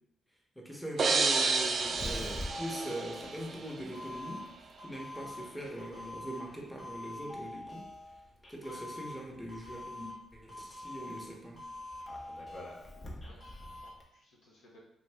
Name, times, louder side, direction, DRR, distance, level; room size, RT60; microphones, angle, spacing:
voice 1, 0.6-4.4 4.8-7.9 8.5-11.6, right 1 dB, 5° left, -1 dB, 0.9 m, -42 dB
sound 1, 1.0-3.8, right 4 dB, 55° right, 0.3 m, -30 dB
Doorbell, 1.2-14.0, left 1 dB, 40° left, 0.8 m, -45 dB
voice 2, 13.2-14.8, left 1 dB, 80° left, -4 dB, 0.8 m, -59 dB
2.6 x 2.5 x 3.4 m, 0.85 s
supercardioid pair, 45°, 0 cm